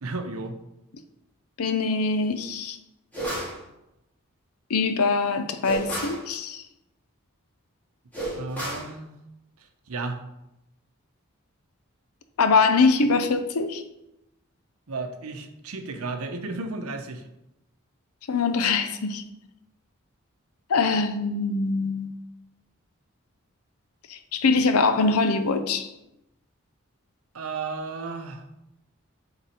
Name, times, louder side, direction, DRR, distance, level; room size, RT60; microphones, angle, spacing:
voice 1, 0.0-0.6 8.3-9.1 9.9-10.2 14.9-17.2 27.3-28.5, right 3 dB, 85° right, 0.8 m, -33 dB
voice 2, 1.6-2.8 4.7-6.6 12.4-13.8 18.3-19.2 20.7-22.1 24.3-25.9, left 4 dB, 90° left, 0.6 m, -23 dB
sound 1, 3.1-3.6 5.6-6.2 8.1-8.9, right 1 dB, 10° left, 1.9 m, -31 dB
7.0 x 3.9 x 4.4 m
head